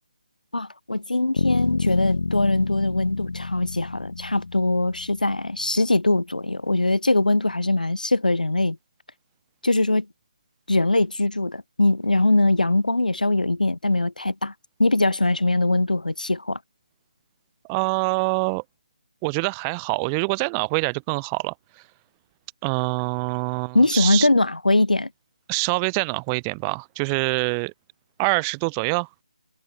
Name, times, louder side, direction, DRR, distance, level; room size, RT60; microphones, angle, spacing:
voice 1, 0.5-8.8 9.6-10.1 10.7-14.5 14.8-16.6 23.7-25.1, left 2 dB, 90° left, 4.2 m, -21 dB
sound 1, 1.4-5.3, left 3 dB, 70° left, 3.0 m, -28 dB
voice 2, 17.6-18.6 19.2-21.9 22.6-24.3 25.5-27.7 28.2-29.1, right 35 dB, 15° right, 2.4 m, -25 dB
figure-of-eight pair, 160°, 4 cm